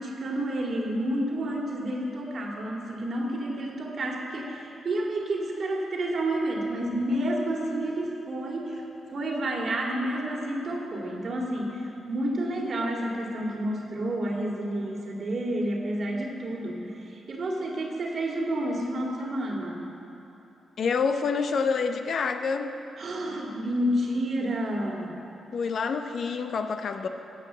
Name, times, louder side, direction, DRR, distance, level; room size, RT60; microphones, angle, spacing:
voice 1, 0.0-8.8 9.1-19.9 23.0-25.1, right 1 dB, 60° right, -1 dB, 2.1 m, -30 dB
voice 2, 20.8-22.7 25.5-27.1, left 5 dB, 65° left, 7 dB, 0.7 m, -27 dB
15.0 x 5.4 x 7.7 m, 2.9 s
supercardioid pair, 55°, 0 cm